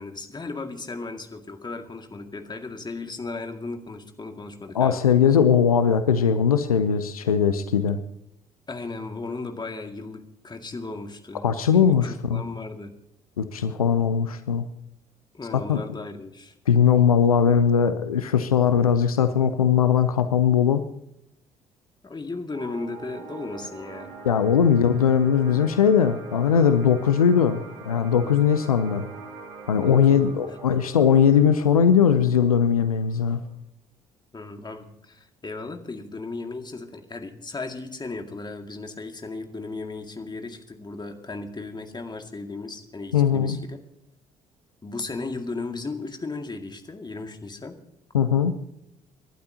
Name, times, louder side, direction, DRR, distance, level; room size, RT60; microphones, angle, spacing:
voice 1, 0.0-5.0 8.7-12.0 12.3-12.9 15.3-16.5 22.0-24.2 29.8-30.5 34.3-43.8 44.8-47.8, left 3 dB, 25° left, 5 dB, 2.1 m, -36 dB
voice 2, 4.7-8.0 11.4-12.4 13.4-14.6 15.5-15.8 16.7-20.8 24.2-29.0 29.7-33.4 43.1-43.6 48.1-48.6, left 7 dB, 85° left, 11 dB, 0.6 m, -20 dB
sound 1, 22.5-33.6, right 4 dB, 70° right, 2.7 m, -43 dB
28.0 x 12.0 x 2.8 m, 0.78 s
figure-of-eight pair, 50°, 18 cm